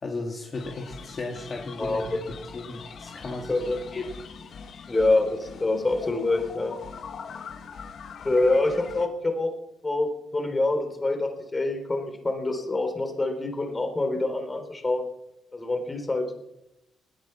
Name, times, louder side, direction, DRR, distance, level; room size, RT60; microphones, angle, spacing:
voice 1, 0.0-2.2 2.5-3.6 3.9-4.0, left 3 dB, 40° left, 1 dB, 2.2 m, -35 dB
sound 1, 0.5-9.1, left 6 dB, 60° left, 1.7 m, -42 dB
voice 2, 1.8-2.2 3.5-3.8 4.9-6.7 8.2-9.5 9.8-15.0 15.5-16.3, left 2 dB, 25° left, 6 dB, 3.8 m, -26 dB
20.0 x 10.5 x 5.9 m, 0.88 s
cardioid pair, 90°, 0 cm